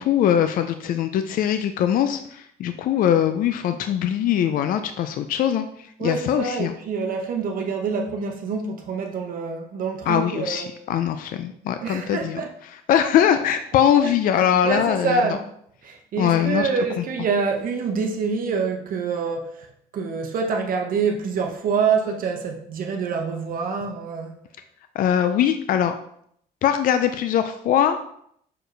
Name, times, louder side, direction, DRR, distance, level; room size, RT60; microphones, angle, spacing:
voice 1, 0.0-6.7 10.1-12.4 12.9-15.2 16.2-16.7 25.0-25.9 26.6-28.0, left 9 dB, 55° left, 0.4 m, -21 dB
voice 2, 6.0-10.7 11.8-12.5 14.0-14.1 14.6-15.5 15.8-24.4, right 5 dB, 55° right, 0.8 m, -26 dB
6.5 x 4.5 x 3.3 m
cardioid pair, 110°, 17 cm